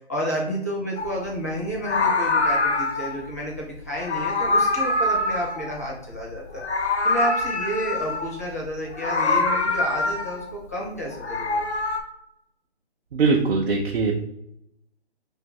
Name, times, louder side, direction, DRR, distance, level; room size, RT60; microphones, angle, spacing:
voice 1, 0.1-6.6 7.0-11.6, equal, 15° left, -4 dB, 0.4 m, -30 dB
Meow, 1.0-1.2 1.8-3.2 3.9-6.2 6.5-8.4 8.9-10.5 11.1-12.0, left 2 dB, 85° left, 0.7 m, -24 dB
voice 2, 13.1-14.1, right 4 dB, 60° right, 1 dB, 0.6 m, -21 dB
2.6 x 2.5 x 4.0 m, 0.79 s
figure-of-eight pair, 150°, 32 cm